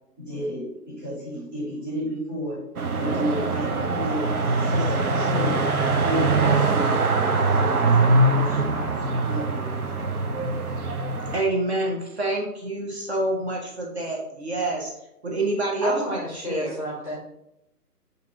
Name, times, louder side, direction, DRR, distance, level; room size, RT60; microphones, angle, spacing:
voice 1, 0.2-2.6 3.0-5.7 6.0-9.0 9.2-9.8, equal, 15° right, -8 dB, 1.4 m, -32 dB
sound 1, 2.8-11.4, right 3 dB, 65° right, 0.6 m, -23 dB
voice 2, 11.3-14.9 15.2-16.7, right 2 dB, 40° right, -1 dB, 0.9 m, -27 dB
voice 3, 15.8-17.2, equal, 25° left, -6 dB, 0.6 m, -30 dB
7.0 x 2.6 x 2.7 m, 0.84 s
figure-of-eight pair, 140°, 48 cm